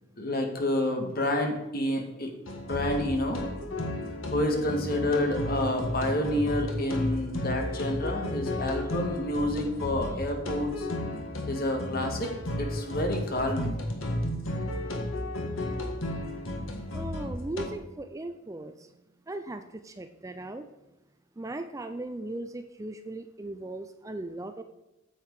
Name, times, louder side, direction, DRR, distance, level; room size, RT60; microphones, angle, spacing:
voice 1, 0.2-2.3 2.6-3.4 4.3-10.9 11.5-12.3 12.6-13.8, left 1 dB, 50° left, 3 dB, 1.7 m, -29 dB
sound 1, 2.5-17.7, left 1 dB, 90° left, 1.5 m, -33 dB
voice 2, 16.9-18.9 19.3-20.6 21.4-24.6, right 2 dB, 15° right, 9 dB, 0.4 m, -38 dB
8.8 x 7.8 x 4.7 m, 0.97 s
head